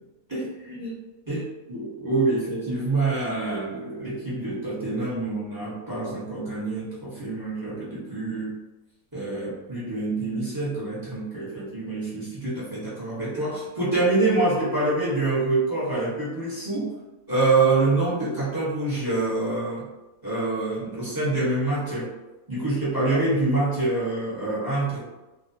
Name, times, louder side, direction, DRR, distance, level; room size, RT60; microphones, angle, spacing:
voice 1, 0.3-1.0 1.3-8.5 9.1-16.9 17.3-19.9 20.2-22.1 22.5-25.0, right 2 dB, 15° right, -9 dB, 0.9 m, -26 dB
2.4 x 2.2 x 2.7 m, 1.1 s
omnidirectional pair, 1.5 m